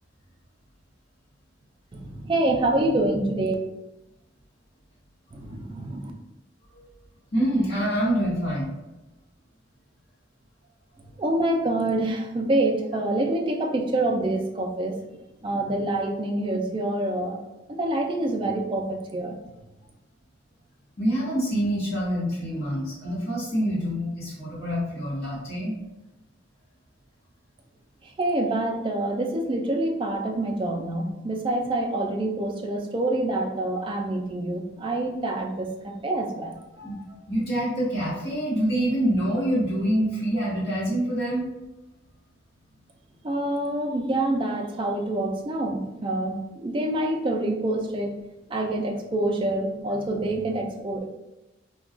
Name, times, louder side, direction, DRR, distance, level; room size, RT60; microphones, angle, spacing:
voice 1, 1.9-3.5 5.3-6.1 11.2-15.0 15.4-17.4 17.8-19.3 28.2-36.9 43.2-48.2 48.5-51.0, right 1 dB, 25° right, 2 dB, 0.3 m, -26 dB
voice 2, 7.3-8.7 21.0-25.7 36.8-37.0 37.3-41.5, right 1 dB, 50° left, -9 dB, 1.1 m, -26 dB
2.3 x 2.2 x 3.7 m, 0.97 s
head